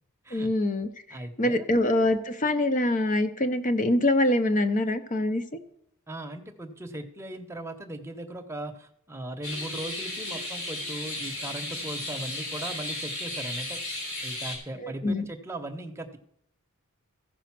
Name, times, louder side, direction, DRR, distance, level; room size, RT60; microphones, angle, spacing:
voice 1, 0.3-0.9 1.4-5.4 14.8-15.2, left 1 dB, 35° left, 9 dB, 0.7 m, -24 dB
voice 2, 1.1-1.6 6.1-13.8 14.2-16.2, right 1 dB, 10° right, 5 dB, 0.9 m, -38 dB
sound 1, 9.4-14.6, left 1 dB, 65° left, 3.6 m, -34 dB
14.5 x 5.0 x 6.0 m, 0.73 s
head